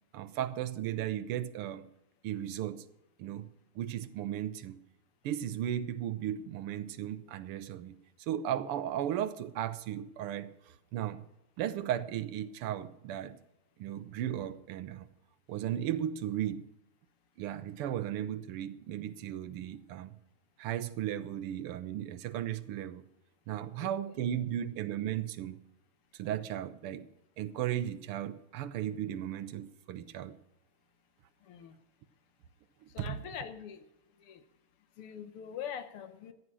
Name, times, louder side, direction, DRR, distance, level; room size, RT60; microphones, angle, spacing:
voice 1, 0.1-1.9 2.2-2.8 3.2-3.5 3.8-4.8 5.2-11.2 11.6-13.4 13.8-15.1 15.5-16.6 17.4-20.2 20.6-23.0 23.5-25.6 26.1-27.1 27.4-30.4 32.8-33.2, right 11 dB, 85° right, 12 dB, 1.7 m, -36 dB
voice 2, 32.9-33.8 34.2-34.4 35.0-36.3, left 8 dB, 80° left, 10 dB, 2.0 m, -43 dB
14.0 x 9.5 x 6.1 m, 0.88 s
omnidirectional pair, 2.4 m